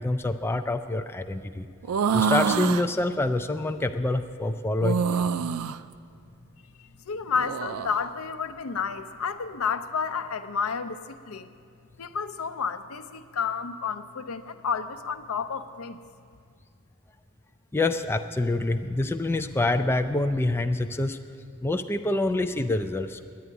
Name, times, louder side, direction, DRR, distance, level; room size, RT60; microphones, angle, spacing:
voice 1, 0.0-1.7 2.1-5.3 17.7-21.2 21.6-23.2, left 2 dB, 10° left, 7 dB, 0.3 m, -26 dB
sound 1, 1.8-2.9 4.8-5.8 7.3-7.9, right 6 dB, 85° right, 0.4 m, -26 dB
voice 2, 7.1-11.5 12.0-16.0, left 6 dB, 80° left, 10 dB, 0.6 m, -31 dB
10.0 x 9.4 x 9.8 m, 2.2 s
head